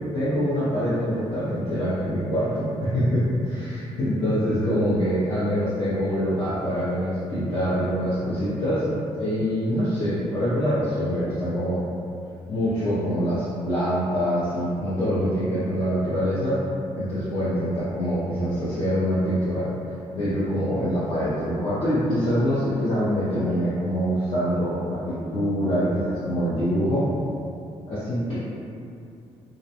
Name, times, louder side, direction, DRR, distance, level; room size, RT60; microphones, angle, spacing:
voice 1, 0.1-8.8 9.2-11.8 12.5-16.5 17.0-19.7 20.1-27.0 27.9-28.4, equal, 50° left, -12 dB, 0.6 m, -25 dB
2.4 x 2.1 x 2.8 m, 2.5 s
cardioid pair, 145°, 11 cm